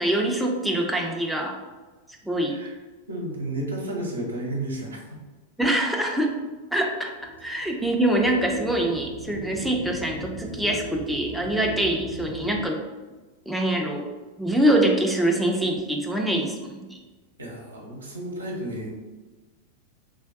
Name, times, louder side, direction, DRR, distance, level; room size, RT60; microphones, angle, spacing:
voice 1, 0.0-1.5 2.3-2.5 5.6-6.3 6.7-7.1 7.4-12.8 13.5-14.0 14.4-17.0, right 1 dB, ahead, 0 dB, 0.4 m, -24 dB
voice 2, 3.1-5.2 17.4-18.9, right 1 dB, 75° right, -1 dB, 0.6 m, -32 dB
sound 1, 7.2-12.6, right 2 dB, 60° left, 0.8 m, -37 dB
3.4 x 2.2 x 2.4 m, 1.2 s
figure-of-eight pair, 90°, 0 cm